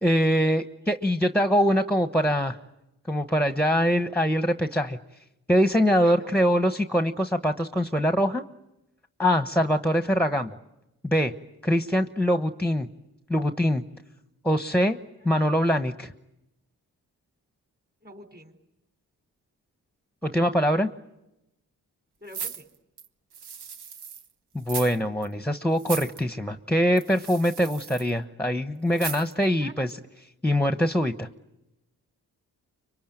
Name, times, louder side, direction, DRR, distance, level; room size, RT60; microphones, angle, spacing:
voice 1, 0.0-2.6 3.1-5.0 5.5-8.4 9.2-10.6 11.0-11.3 11.6-12.9 13.3-13.8 14.4-15.0 15.2-16.1 20.2-20.9 24.5-29.9 30.4-31.3, equal, 5° left, 8 dB, 1.1 m, -23 dB
voice 2, 6.0-6.3 15.2-15.3 18.0-18.6 22.2-22.7 28.9-29.0 29.4-29.7, equal, 25° right, 5 dB, 4.2 m, -46 dB
sound 1, 22.3-24.3 24.6-25.0 25.2-25.3 25.8-26.2 27.0-28.1 28.9-29.4 29.9-30.0, right 7 dB, 85° right, 1.1 m, -37 dB
25.5 x 23.0 x 9.1 m, 0.93 s
cardioid pair, 50°, 39 cm